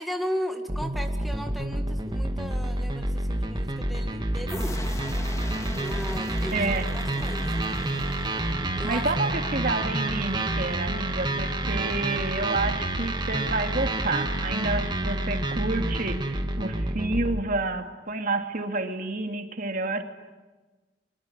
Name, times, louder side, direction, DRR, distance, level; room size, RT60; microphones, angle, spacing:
voice 1, 0.0-4.8 5.8-7.4 8.7-9.3, equal, ahead, 3 dB, 2.0 m, -36 dB
sound 1, 0.7-17.4, right 1 dB, 25° right, 2.5 m, -28 dB
sound 2, 4.5-9.1, left 1 dB, 15° left, 2.2 m, -40 dB
voice 2, 6.5-6.9 8.8-20.0, right 2 dB, 50° right, 6 dB, 2.5 m, -29 dB
24.5 x 24.0 x 9.9 m, 1.2 s
head